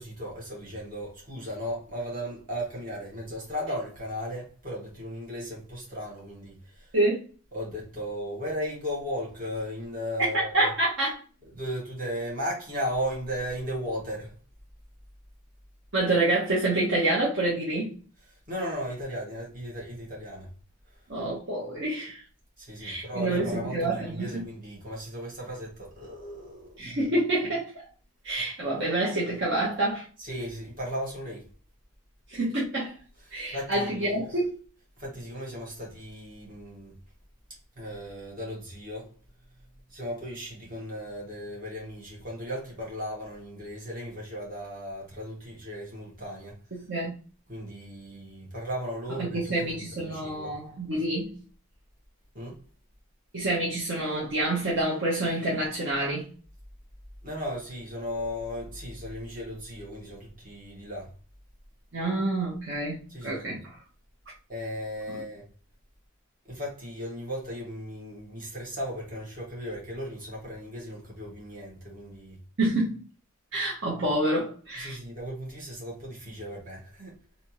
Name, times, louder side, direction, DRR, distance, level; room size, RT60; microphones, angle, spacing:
voice 1, 0.0-6.9 7.5-10.7 11.5-14.4 18.5-20.5 20.9-21.0 22.6-26.7 30.2-31.5 33.3-34.2 35.0-36.9 37.8-39.1 39.9-46.6 47.5-50.6 52.3-52.6 57.2-61.1 63.1-63.6 64.5-65.5 66.4-72.4 74.7-77.2, equal, 40° right, 1.5 m, -36 dB
voice 2, 10.3-11.2 15.9-17.9 21.1-22.2 22.8-24.4 26.8-27.8 28.2-30.0 32.3-32.9 33.3-34.5 46.7-47.1 49.2-51.4 53.3-56.3 61.9-63.8 72.6-73.0 73.5-75.0, right 2 dB, 55° right, 0.9 m, -27 dB
3.3 x 2.7 x 2.8 m
head